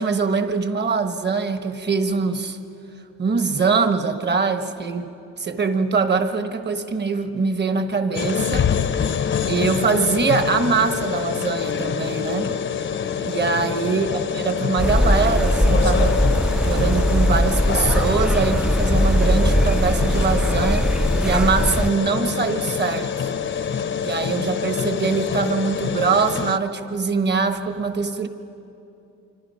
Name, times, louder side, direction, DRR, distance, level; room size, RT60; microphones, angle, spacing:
voice 1, 0.0-2.6 3.2-5.1 5.4-8.7 9.0-9.1 9.5-12.5 13.2-14.1 14.3-16.2 16.6-23.3 24.0-28.3, right 4 dB, 35° right, 8 dB, 1.3 m, -23 dB
sound 1, 8.2-26.6, left 7 dB, 40° left, 0.7 m, -25 dB
sound 2, 14.8-21.9, equal, 5° right, 0.4 m, -20 dB
26.0 x 25.0 x 5.7 m, 2.8 s
cardioid pair, 105°, 30 cm